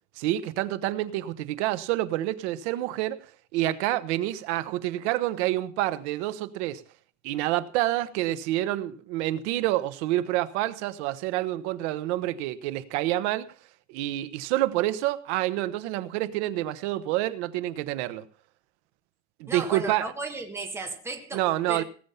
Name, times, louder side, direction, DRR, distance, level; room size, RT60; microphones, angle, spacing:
voice 1, 0.2-6.8 7.2-13.5 13.9-18.3 19.4-20.1 21.3-21.8, right 15 dB, 70° right, 1.1 m, -28 dB
voice 2, 19.5-21.4 21.7-21.8, right 3 dB, 5° right, 1.6 m, -34 dB
18.0 x 7.1 x 5.7 m
cardioid pair, 170°, 35 cm